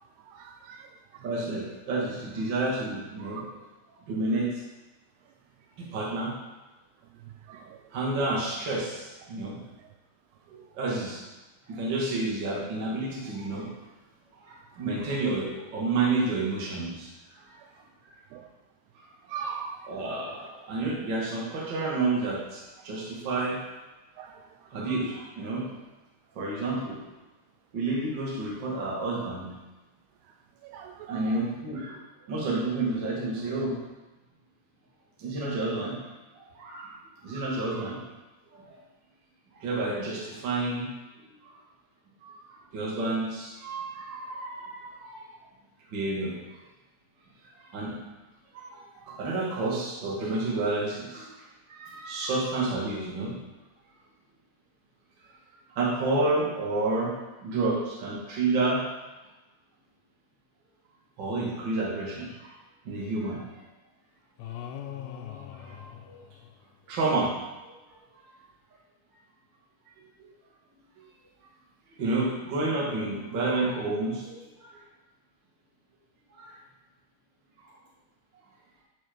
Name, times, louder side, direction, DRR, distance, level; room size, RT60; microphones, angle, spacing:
voice 1, 0.3-0.8 7.5-7.7 18.3-18.4 19.3-19.8 24.2-24.3 24.9-25.0 30.7-31.1, right 6 dB, 85° right, 4 dB, 2.5 m, -39 dB
voice 2, 1.2-3.6 4.1-4.5 5.8-6.3 7.9-9.6 10.5-11.2 11.7-13.7 14.4-17.1 17.5-17.6 18.9-19.1 19.8-23.6 24.2-24.3 24.7-25.6 26.3-27.0 27.7-29.5 31.1-33.8 35.2-36.0 36.3-37.0 37.2-38.0 38.5-38.8 39.5-40.9 42.2-45.3 45.9-46.3 47.5-48.0 48.5-53.4 55.7-57.1 57.4-58.8 61.2-62.5 62.8-63.4 65.5-65.8 66.0-66.2 66.9-67.3 72.0-74.8 76.3-76.5 77.6-77.7, right 2 dB, 45° right, -4 dB, 1.6 m, -30 dB
sound 1, 64.4-66.9, left 10 dB, 90° left, 2.8 m, -41 dB
10.0 x 4.6 x 4.5 m, 1.1 s
omnidirectional pair, 4.9 m